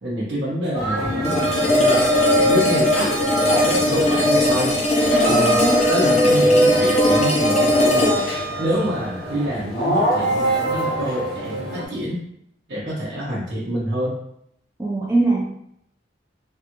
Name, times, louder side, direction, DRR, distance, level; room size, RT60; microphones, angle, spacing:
voice 1, 0.0-4.8 5.3-8.2 8.6-12.2 12.7-14.2, equal, 65° right, -8 dB, 0.7 m, -27 dB
sound 1, 0.7-11.9, equal, 60° left, 1.3 m, -23 dB
sound 2, 1.2-10.3, left 1 dB, 35° left, 0.6 m, -20 dB
voice 2, 5.1-5.8 14.8-15.4, right 2 dB, 15° right, -4 dB, 0.4 m, -22 dB
Piano, 5.2-7.2 7.6-8.4 8.8-8.9 9.3-9.4 9.7-9.8, right 6 dB, 10° left, 1.2 m, -33 dB
3.4 x 2.3 x 2.9 m, 0.73 s
head